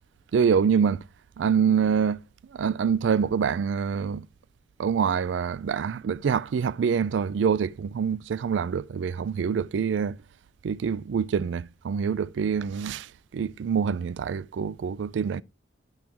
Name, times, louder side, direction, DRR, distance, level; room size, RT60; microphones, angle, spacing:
voice 1, 0.3-1.0 1.4-2.2 2.5-4.3 4.8-10.2 10.6-15.4, right 6 dB, 90° right, 0.3 m, -25 dB
11.0 x 6.1 x 3.4 m
head